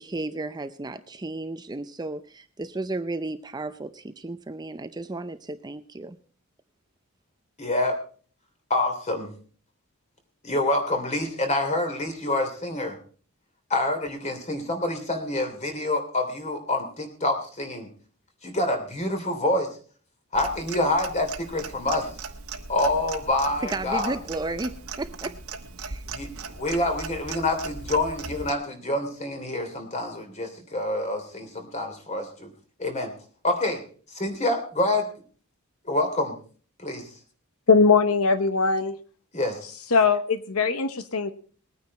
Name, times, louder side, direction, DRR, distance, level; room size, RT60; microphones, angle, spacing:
voice 1, 0.0-6.2 23.7-24.7 25.0-25.3 25.8-26.0, right 2 dB, 20° right, 11 dB, 0.5 m, -33 dB
voice 2, 7.6-8.0 8.7-9.3 10.4-13.0 13.7-17.9 18.4-19.7 20.3-22.1 22.7-24.1 26.1-26.3 26.6-32.5 32.8-33.1 33.4-33.8 34.1-35.0 35.8-36.4 36.8-37.1 39.3-39.7, left 2 dB, 30° left, 5 dB, 3.1 m, -27 dB
Clock, 20.3-28.5, right 4 dB, 80° right, 1.2 m, -38 dB
voice 3, 37.7-39.0 39.9-41.3, left 4 dB, 80° left, 11 dB, 1.0 m, -20 dB
20.5 x 9.5 x 4.2 m, 0.42 s
head